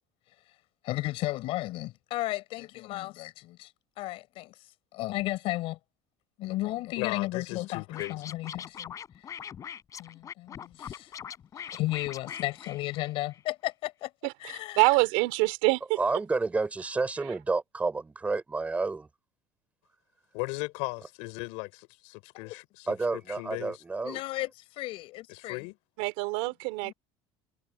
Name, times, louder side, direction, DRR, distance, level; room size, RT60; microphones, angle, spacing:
voice 1, 0.8-3.7 4.0-4.5 4.9-5.8 6.4-8.9 10.0-11.1 11.7-14.1 14.4-14.8 22.3-22.6 24.0-24.5 24.8-25.6 26.8-26.9, left 17 dB, 55° left, 4.4 m, -34 dB
voice 2, 7.0-8.3 20.3-23.8 25.3-25.8, left 28 dB, 80° left, 4.9 m, -37 dB
Scratching (performance technique), 7.9-13.4, left 8 dB, 30° left, 5.1 m, -42 dB
voice 3, 14.8-16.0 26.0-26.9, right 25 dB, 80° right, 3.2 m, -25 dB
voice 4, 16.0-19.1 22.9-24.2, right 3 dB, 10° right, 5.4 m, -30 dB
cardioid pair, 165°, 11 cm